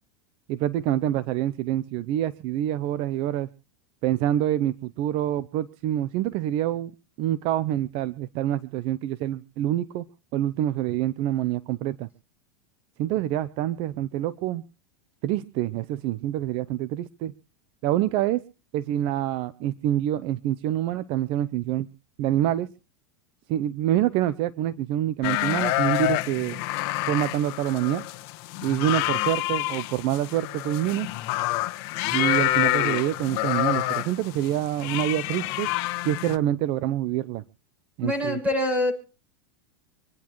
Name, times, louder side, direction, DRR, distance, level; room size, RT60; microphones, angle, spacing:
voice 1, 0.5-3.5 4.0-6.9 7.2-10.1 10.3-12.1 13.0-14.6 15.2-17.3 17.8-18.4 18.7-21.9 22.2-22.7 23.5-26.6 27.1-28.0 28.6-31.1 32.1-35.7 36.0-37.4 38.0-38.4, right 12 dB, 50° right, 15 dB, 0.7 m, -26 dB
sound 1, 25.2-36.4, left 17 dB, 55° left, 1.3 m, -27 dB
voice 2, 38.0-38.9, left 1 dB, 10° right, 5 dB, 7.6 m, -24 dB
26.5 x 10.5 x 3.1 m, 0.35 s
supercardioid pair, 120°, 12 cm